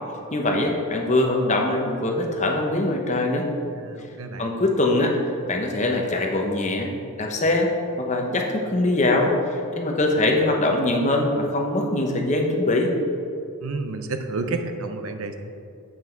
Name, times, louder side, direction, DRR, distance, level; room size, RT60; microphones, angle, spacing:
voice 1, 0.3-3.5 4.4-5.1 5.5-6.9 7.2-7.7 8.0-12.9, left 2 dB, 30° left, 1 dB, 0.9 m, -22 dB
voice 2, 3.8-4.6 13.6-15.3, right 3 dB, 70° right, 7 dB, 0.6 m, -30 dB
8.0 x 6.0 x 4.5 m, 2.6 s
head